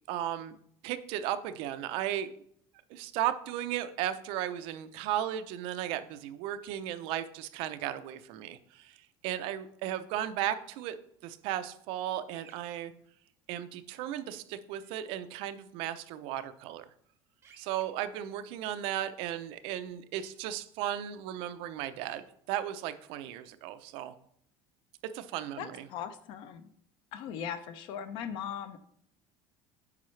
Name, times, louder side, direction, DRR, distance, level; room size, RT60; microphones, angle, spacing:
voice 1, 0.1-0.6 0.8-2.3 2.9-9.0 9.2-11.0 11.2-12.9 13.5-16.9 17.6-24.1 25.0-25.8, right 11 dB, 60° right, 11 dB, 0.5 m, -35 dB
sound 1, 12.3-12.6 14.8-14.9 17.4-17.8 20.2-20.3 22.0-22.2, right 6 dB, 25° right, 0.9 m, -57 dB
voice 2, 25.6-26.7 27.1-28.8, left 8 dB, 50° left, 12 dB, 0.6 m, -39 dB
8.5 x 5.6 x 3.2 m, 0.68 s
cardioid pair, 175°, 11 cm